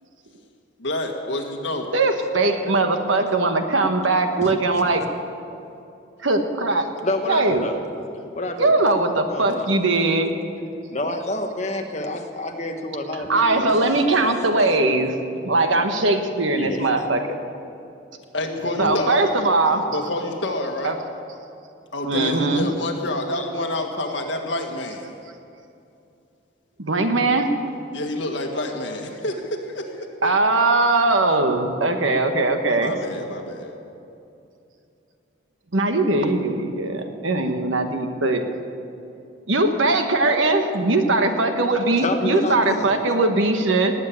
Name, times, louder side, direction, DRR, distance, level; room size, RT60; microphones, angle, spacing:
voice 1, 0.8-1.9 18.3-19.2 19.9-20.9 21.9-25.1 27.9-29.8 30.2-30.3 32.8-33.8, left 1 dB, 70° left, 2 dB, 1.8 m, -28 dB
voice 2, 1.9-5.0 6.2-6.9 7.3-7.7 8.6-10.4 13.3-15.1 15.4-17.4 18.8-19.8 20.8-20.9 22.0-22.7 26.8-27.5 30.2-32.9 35.7-38.4 39.5-43.9, right 2 dB, 85° right, 6 dB, 1.4 m, -20 dB
voice 3, 7.0-7.8 8.3-8.7 9.3-9.8 10.9-13.8 14.2-14.8 16.6-16.9 18.8-19.1 23.3-23.5 42.0-43.2, left 1 dB, 35° left, 4 dB, 1.2 m, -29 dB
19.0 x 7.5 x 8.7 m, 2.6 s
head